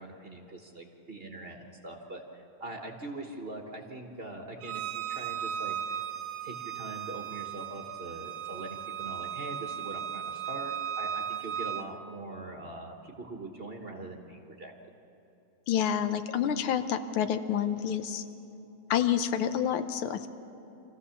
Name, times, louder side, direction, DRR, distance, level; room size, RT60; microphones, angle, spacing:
voice 1, 0.0-6.0 6.4-14.7, right 2 dB, 35° right, 2 dB, 1.1 m, -42 dB
Bowed string instrument, 4.6-11.8, right 9 dB, 65° right, 1.4 m, -36 dB
voice 2, 15.7-18.2 18.9-20.3, left 9 dB, 80° left, 10 dB, 1.6 m, -28 dB
25.5 x 15.0 x 7.0 m, 2.9 s
omnidirectional pair, 2.3 m